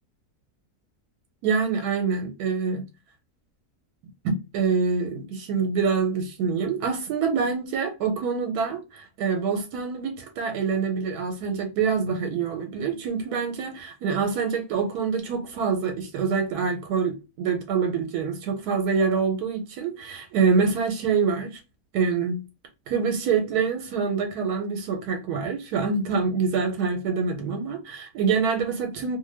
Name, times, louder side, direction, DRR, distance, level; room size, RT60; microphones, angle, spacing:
voice 1, 1.4-2.9 4.2-21.6 21.9-22.4 22.9-29.2, right 5 dB, 85° right, 1.1 m, -26 dB
2.6 x 2.2 x 3.1 m
omnidirectional pair, 1.6 m